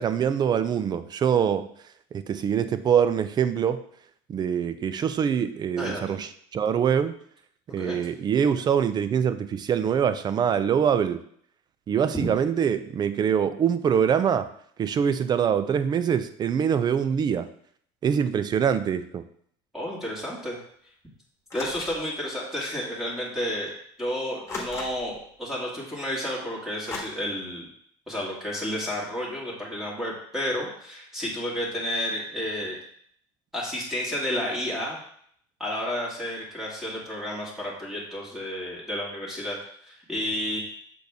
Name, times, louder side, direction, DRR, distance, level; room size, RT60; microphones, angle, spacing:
voice 1, 0.0-1.7 2.1-3.8 4.3-7.2 7.7-11.2 11.9-14.5 14.8-17.5 18.0-19.2, right 8 dB, 30° right, 12 dB, 0.5 m, -24 dB
voice 2, 5.8-6.2 7.7-8.0 12.1-12.3 18.6-18.7 19.7-20.6 21.5-23.7 24.0-27.7 28.1-32.8 33.5-35.0 35.6-39.6 39.8-40.6, left 1 dB, ahead, -6 dB, 2.0 m, -31 dB
sound 1, 21.5-22.0 23.1-23.2 24.5-25.2 26.9-27.0, left 3 dB, 20° left, 1.5 m, -36 dB
6.8 x 4.0 x 3.4 m, 0.64 s
supercardioid pair, 110°, 14 cm